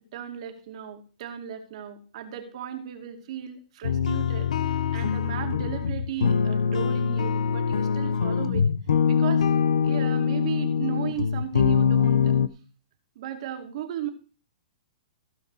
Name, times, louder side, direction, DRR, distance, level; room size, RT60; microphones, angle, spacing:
voice 1, 0.1-8.7 9.1-9.5 9.8-12.3 13.2-14.1, right 10 dB, 60° right, 5 dB, 2.3 m, -36 dB
sound 1, 3.8-12.5, left 7 dB, 80° left, 0.8 m, -23 dB
16.0 x 5.9 x 4.7 m, 0.36 s
hypercardioid pair, 135°, 4 cm